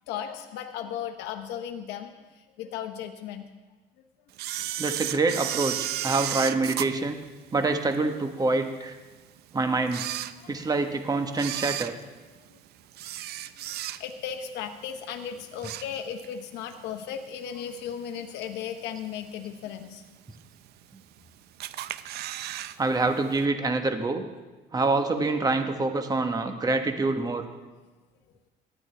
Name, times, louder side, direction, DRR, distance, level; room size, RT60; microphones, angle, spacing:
voice 1, 0.1-3.5 10.3-10.6 12.5-12.6 14.0-20.0, left 8 dB, 90° left, 6 dB, 0.9 m, -36 dB
Camera, 4.4-8.0 8.5-8.6 9.3-9.4 9.8-10.8 11.3-14.3 14.7-15.0 15.3-16.4 16.7-16.8 17.7-17.8 18.4-18.8 19.2-19.3 19.5-19.6 19.8-19.9 20.7-21.2 21.6-22.8 23.0-23.1 23.4-23.5, right 13 dB, 75° right, 0.5 m, -33 dB
voice 2, 4.8-7.2 7.5-9.0 9.5-10.0 10.5-11.9 22.8-24.2 24.7-27.4, right 3 dB, 20° right, 6 dB, 1.2 m, -26 dB
17.5 x 11.5 x 3.4 m, 1.3 s
cardioid pair, 110°, 17 cm